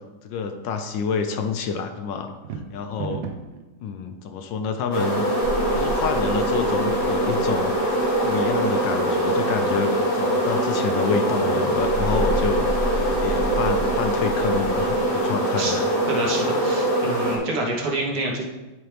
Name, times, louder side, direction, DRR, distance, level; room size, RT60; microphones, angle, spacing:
voice 1, 0.2-2.3 2.7-3.2 3.8-5.3 5.7-7.7 8.2-15.9, left 5 dB, 75° left, 7 dB, 1.2 m, -28 dB
sound 1, 2.3-3.6, right 6 dB, 80° right, 1.5 m, -33 dB
sound 2, 4.9-17.4, right 1 dB, 35° left, 1.8 m, -23 dB
sound 3, 5.4-9.0 11.7-15.0, right 1 dB, 25° right, 1.7 m, -31 dB
voice 2, 16.1-18.5, right 2 dB, 65° right, -2 dB, 1.7 m, -27 dB
10.5 x 4.4 x 3.3 m, 1.1 s
omnidirectional pair, 2.1 m